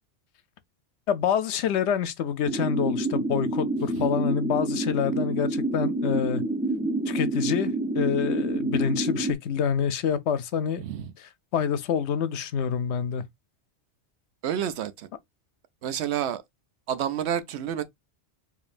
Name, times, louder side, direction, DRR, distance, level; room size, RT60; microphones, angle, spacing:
voice 1, 1.1-6.4 7.1-10.8 11.5-13.2, left 8 dB, 75° left, 0.9 m, -27 dB
sound 1, 2.4-9.3, right 2 dB, 15° right, 0.4 m, -28 dB
voice 2, 10.8-11.1 14.4-15.1 15.8-16.4 16.9-17.8, right 9 dB, 70° right, 0.9 m, -29 dB
5.1 x 2.8 x 2.4 m
omnidirectional pair, 1.2 m